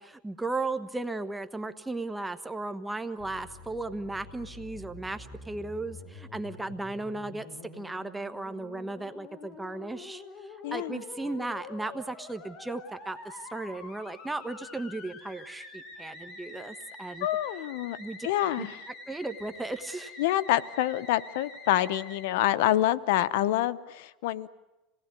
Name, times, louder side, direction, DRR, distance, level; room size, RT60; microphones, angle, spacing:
voice 1, 0.0-10.2 10.7-17.3 18.0-18.3 18.6-18.7 19.1-20.1, right 2 dB, 10° right, 9 dB, 1.4 m, -36 dB
Musical instrument, 3.2-22.2, left 3 dB, 45° left, 4.5 m, -47 dB
voice 2, 10.6-11.0 17.2-18.0 18.2-18.7 20.2-24.5, left 14 dB, 80° left, 16 dB, 0.9 m, -27 dB
26.5 x 18.5 x 9.8 m, 1.0 s
supercardioid pair, 120°, 0 cm